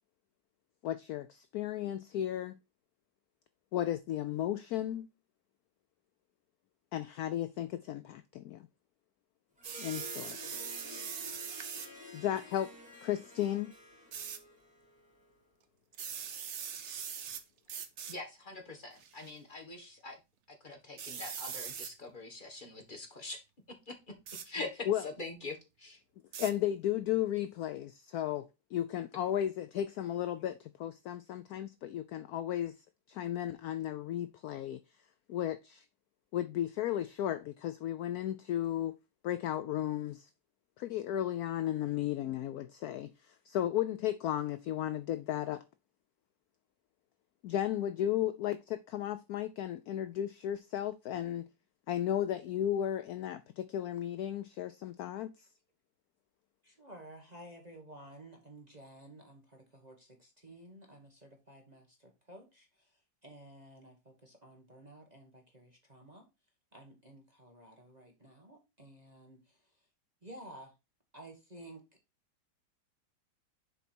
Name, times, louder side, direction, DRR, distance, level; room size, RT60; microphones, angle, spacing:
voice 1, 0.8-2.6 3.7-5.1 6.9-8.7 9.8-10.4 12.1-12.7 13.0-13.7 24.9-25.0 26.4-32.8 33.1-34.8 35.3-35.8 36.3-39.0 39.2-40.3 40.8-43.1 43.5-45.6 47.4-51.5 51.9-55.3, left 11 dB, 75° left, 0.9 m, -34 dB
Harp, 9.6-15.3, left 2 dB, 5° right, 2.6 m, -51 dB
sound 1, 9.6-11.9 14.1-14.4 15.9-17.4 17.7-18.2 19.0-19.3 21.0-21.9 24.3-24.5 26.3-26.5, right 8 dB, 55° right, 0.8 m, -41 dB
voice 2, 18.1-20.2 20.6-23.4 23.9-24.0 24.4-26.0, left 3 dB, 30° left, 1.6 m, -43 dB
voice 3, 56.6-66.3 66.7-69.7 70.2-70.7 71.1-71.8, right 1 dB, 25° right, 1.2 m, -53 dB
6.9 x 4.7 x 4.3 m
omnidirectional pair, 2.0 m